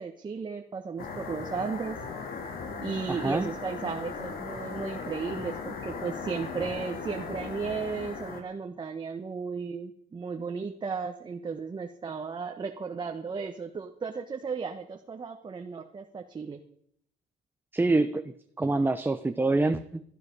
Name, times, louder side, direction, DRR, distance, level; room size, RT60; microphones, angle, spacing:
voice 1, 0.0-2.0 2.8-16.6, right 5 dB, 25° right, 4 dB, 1.3 m, -35 dB
sound 1, 1.0-8.4, left 5 dB, 60° left, 3.0 m, -38 dB
voice 2, 3.1-3.5 17.7-20.0, right 2 dB, 10° right, 9 dB, 0.8 m, -26 dB
17.0 x 12.5 x 5.5 m, 0.69 s
cardioid pair, 110°, 17 cm